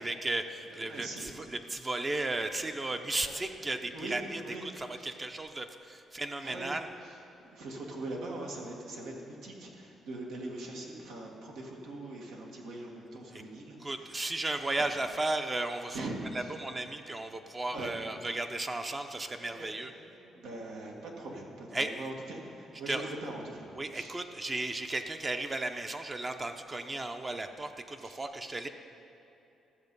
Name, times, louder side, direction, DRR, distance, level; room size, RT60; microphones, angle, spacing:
voice 1, 0.0-6.9 13.3-13.4 13.8-16.1 16.3-19.9 21.7-21.9 22.9-23.0 23.8-28.7, right 2 dB, 25° right, 6 dB, 0.7 m, -35 dB
voice 2, 0.9-1.3 1.8-1.9 2.9-3.3 3.7-4.7 4.9-5.2 6.2-6.7 7.0-14.2 15.9-16.5 17.6-17.9 19.2-24.2 28.0-28.2, right 2 dB, 85° right, -1 dB, 1.7 m, -42 dB
13.0 x 7.2 x 5.4 m, 2.8 s
cardioid pair, 90°, 0 cm